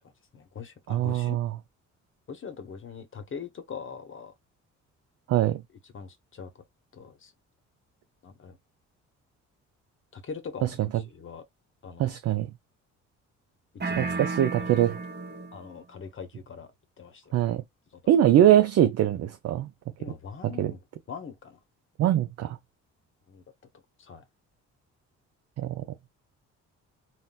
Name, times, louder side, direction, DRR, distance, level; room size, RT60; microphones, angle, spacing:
voice 1, 0.3-1.3 2.3-4.3 5.9-6.5 6.9-7.3 8.2-8.6 10.1-11.4 11.8-12.2 13.8-14.2 14.6-14.7 15.5-16.7 17.0-17.4 17.9-18.1 20.0-20.8 21.1-21.6 23.3-23.4 24.0-24.2, left 6 dB, 45° left, 0.8 m, -42 dB
voice 2, 0.9-1.5 5.3-5.6 10.6-10.7 12.0-12.5 14.0-15.0 17.3-17.6 18.1-19.7 20.4-20.7 22.0-22.6 25.6-25.8, right 11 dB, 55° right, 0.4 m, -22 dB
sound 1, 13.8-15.7, right 3 dB, 35° right, 1.1 m, -33 dB
3.8 x 2.1 x 2.2 m
cardioid pair, 90°, 30 cm